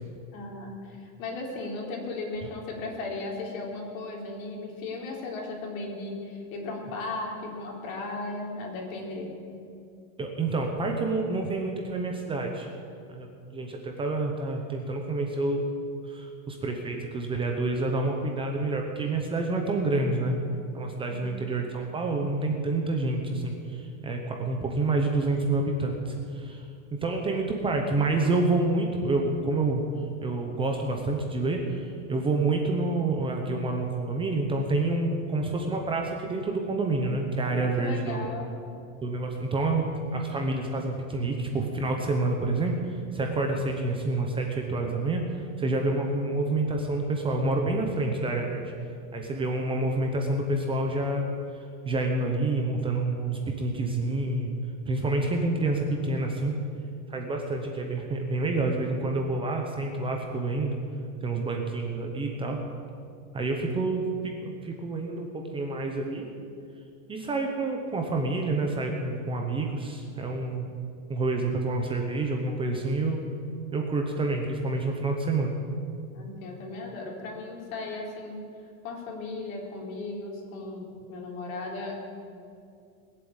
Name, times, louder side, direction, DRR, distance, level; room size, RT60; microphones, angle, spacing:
voice 1, 0.3-9.3 21.1-21.4 37.4-38.5 76.1-78.4 78.8-81.9, left 3 dB, 65° left, -1 dB, 4.1 m, -36 dB
voice 2, 10.2-12.7 13.1-13.3 13.5-15.6 16.1-20.3 20.7-26.6 26.9-29.9 30.2-38.3 39.0-42.7 43.1-48.6 49.1-51.3 51.9-54.5 54.9-56.5 57.1-60.8 61.2-62.6 63.3-66.3 67.1-70.7 71.1-73.2 73.7-75.6, right 2 dB, 10° right, 2 dB, 0.8 m, -28 dB
20.5 x 7.8 x 8.9 m, 2.4 s
supercardioid pair, 170°, 44 cm